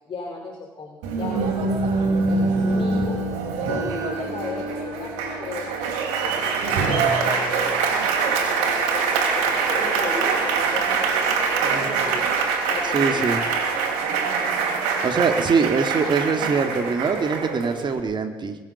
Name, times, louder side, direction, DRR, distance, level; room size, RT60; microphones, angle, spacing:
voice 1, 0.1-1.7 2.3-3.2 3.7-5.1 5.4-6.4 6.6-12.2 12.7-13.8, left 3 dB, 45° left, 0 dB, 3.1 m, -35 dB
Applause, 1.0-18.0, right 4 dB, 75° right, 3.2 m, -24 dB
voice 2, 12.9-13.4 15.0-18.6, right 5 dB, 40° right, 6 dB, 2.2 m, -22 dB
22.5 x 7.6 x 7.1 m, 1.2 s
hypercardioid pair, 55°, 12 cm